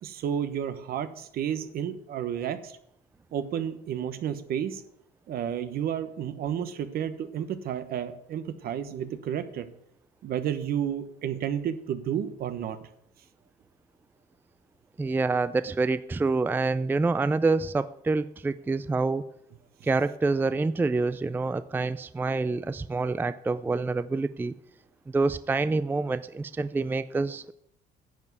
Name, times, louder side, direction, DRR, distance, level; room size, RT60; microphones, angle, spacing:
voice 1, 0.0-2.8 3.3-4.8 5.3-9.7 10.2-12.8, right 9 dB, 65° right, 11 dB, 1.2 m, -31 dB
voice 2, 15.0-19.2 19.8-24.5 25.1-27.5, right 3 dB, 10° right, 14 dB, 0.4 m, -27 dB
11.0 x 7.3 x 8.2 m, 0.72 s
cardioid pair, 110°, 17 cm